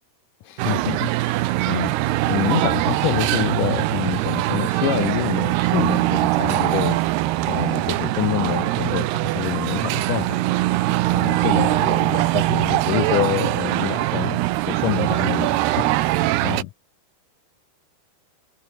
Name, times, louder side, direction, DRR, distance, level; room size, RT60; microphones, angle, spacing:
voice 1, 0.4-7.1 7.4-10.4 10.7-10.8 11.1-14.4 14.7-16.7, left 16 dB, 80° left, 1.8 m, -27 dB
sound 1, 0.6-16.6, right 17 dB, 80° right, 2.9 m, -22 dB
omnidirectional pair, 4.7 m